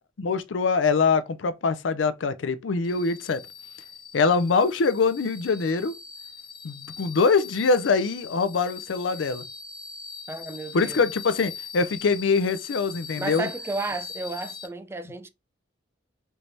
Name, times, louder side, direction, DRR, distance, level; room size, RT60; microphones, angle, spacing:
voice 1, 0.2-3.4 4.1-5.9 6.6-9.4 10.7-13.5, left 4 dB, 85° left, 0.5 m, -23 dB
sound 1, 2.8-14.7, left 5 dB, 25° left, 0.8 m, -41 dB
voice 2, 10.3-11.1 13.2-15.3, right 2 dB, 15° right, 0.4 m, -33 dB
4.6 x 3.2 x 2.6 m
head